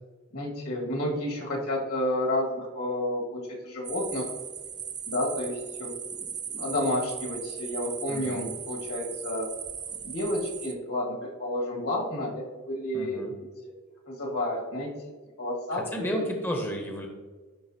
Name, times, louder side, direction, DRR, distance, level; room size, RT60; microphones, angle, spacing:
voice 1, 0.3-4.3 5.1-9.5 10.0-13.7 14.1-14.9 15.4-16.2, left 1 dB, 70° left, -1 dB, 1.7 m, -31 dB
sound 1, 3.8-10.7, right 7 dB, 20° right, 0.3 m, -38 dB
voice 2, 8.1-8.5 12.9-13.3 15.7-17.1, equal, 10° left, 2 dB, 0.7 m, -32 dB
10.5 x 3.9 x 2.7 m, 1.4 s
head